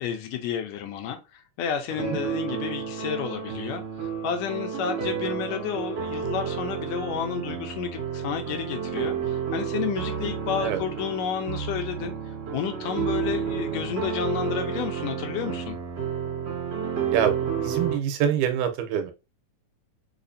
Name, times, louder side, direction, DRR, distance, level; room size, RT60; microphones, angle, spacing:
voice 1, 0.0-12.1 12.5-15.8, left 8 dB, 80° left, 1.8 m, -31 dB
sound 1, 2.0-18.0, right 7 dB, 55° right, 2.2 m, -31 dB
voice 2, 17.1-19.1, right 9 dB, 90° right, 2.3 m, -25 dB
5.0 x 2.4 x 2.6 m
omnidirectional pair, 3.5 m